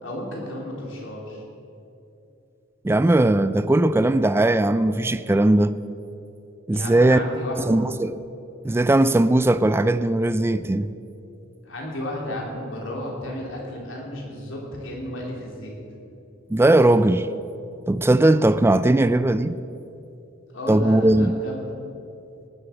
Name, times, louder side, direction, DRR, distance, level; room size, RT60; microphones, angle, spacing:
voice 1, 0.0-1.4 6.7-7.8 11.6-15.7 20.5-21.8, left 1 dB, 70° left, 3.4 m, -33 dB
voice 2, 2.8-5.8 6.7-7.2 7.7-8.2 8.6-10.9 16.5-17.3 17.9-19.6 20.7-21.3, right 1 dB, 10° right, 0.3 m, -19 dB
18.5 x 8.1 x 7.2 m
head